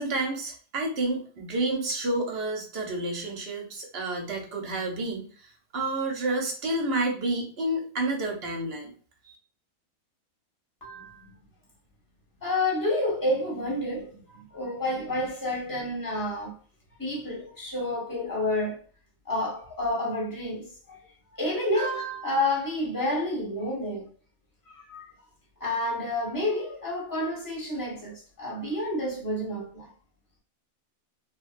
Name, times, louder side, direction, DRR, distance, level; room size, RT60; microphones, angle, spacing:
voice 1, 0.0-8.9 9.2-9.4, right 2 dB, 55° right, 0.9 m, -30 dB
voice 2, 10.8-11.2 12.4-16.5 17.0-18.8 19.3-21.0 21.4-24.1 24.7-25.0 25.6-29.9, left 1 dB, 15° left, 0.9 m, -29 dB
2.8 x 2.2 x 2.5 m
omnidirectional pair, 1.5 m